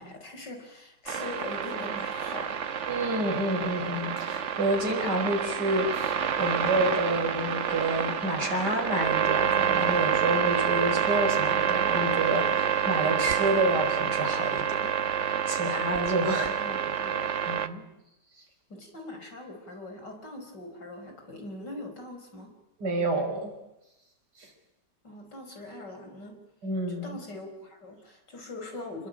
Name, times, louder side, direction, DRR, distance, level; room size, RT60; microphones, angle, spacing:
voice 1, 0.0-2.6 16.6-17.4 18.7-22.5 25.0-26.4 27.0-29.1, left 2 dB, 85° left, 4 dB, 5.9 m, -42 dB
sound 1, 1.1-17.7, right 8 dB, 50° right, 1.3 m, -28 dB
voice 2, 2.9-16.6 17.5-17.8 22.8-23.5 24.4-24.5 26.6-27.2, right 2 dB, 75° right, 3 dB, 6.2 m, -29 dB
28.5 x 20.5 x 9.0 m, 0.91 s
omnidirectional pair, 1.8 m